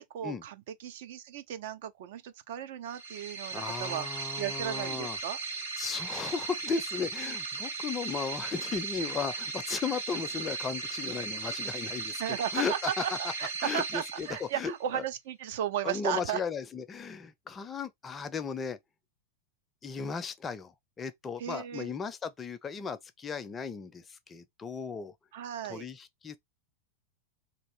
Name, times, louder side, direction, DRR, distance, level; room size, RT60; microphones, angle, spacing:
voice 1, 0.0-5.4 12.2-16.4 21.4-21.9 25.3-25.9, right 10 dB, 55° right, 0.4 m, -35 dB
sound 1, 2.9-14.8, right 4 dB, 85° right, 1.9 m, -37 dB
voice 2, 3.5-5.2 5.8-12.2 12.5-12.9 13.6-15.0 15.8-18.8 19.8-20.7 21.0-25.1 25.7-26.4, left 5 dB, 20° left, 0.4 m, -36 dB
2.6 x 2.4 x 3.3 m
figure-of-eight pair, 90°, 0 cm